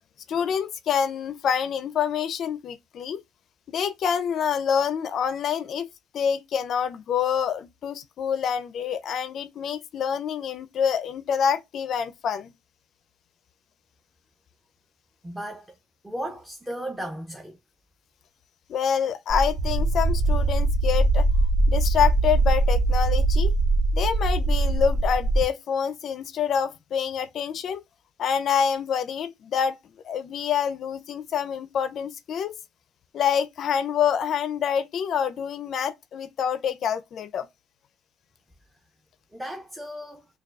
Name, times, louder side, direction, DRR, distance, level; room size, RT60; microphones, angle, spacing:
voice 1, 0.3-3.2 3.7-5.9 6.1-12.5 18.7-21.3 21.7-23.5 23.9-27.8 28.2-29.8 30.0-32.6 33.1-37.5, left 8 dB, 55° left, 0.4 m, -26 dB
voice 2, 15.2-15.7 16.0-17.6 39.3-40.3, right 1 dB, 10° right, 0.6 m, -35 dB
sound 1, 19.3-25.4, right 2 dB, 75° right, 1.0 m, -22 dB
6.4 x 2.3 x 2.3 m
cardioid pair, 100°, 0 cm